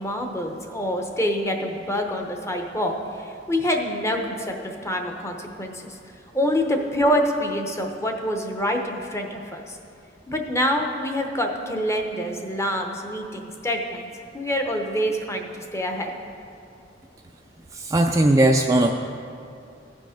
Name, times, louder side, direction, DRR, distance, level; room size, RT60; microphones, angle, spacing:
voice 1, 0.0-6.0 6.3-9.8 10.3-14.1 14.3-16.1, equal, 15° left, 3 dB, 0.8 m, -26 dB
voice 2, 17.7-18.9, right 1 dB, 15° right, 2 dB, 0.3 m, -18 dB
15.5 x 5.3 x 5.0 m, 2.5 s
head